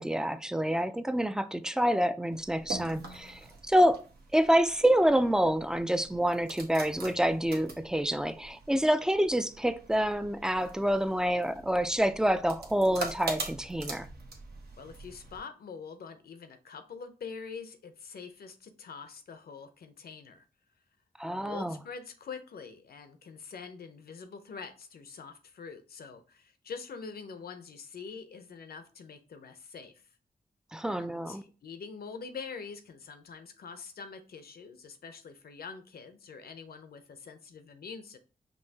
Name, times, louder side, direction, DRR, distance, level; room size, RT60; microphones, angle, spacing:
voice 1, 0.0-4.1 4.3-14.1 21.2-21.8 30.7-31.4, equal, 5° right, 0.3 m, -27 dB
sound 1, 2.3-15.4, right 3 dB, 80° right, 0.9 m, -44 dB
voice 2, 14.8-20.4 21.2-30.1 30.9-38.2, left 5 dB, 75° left, 0.6 m, -45 dB
5.4 x 2.7 x 2.8 m
cardioid pair, 75°, 16 cm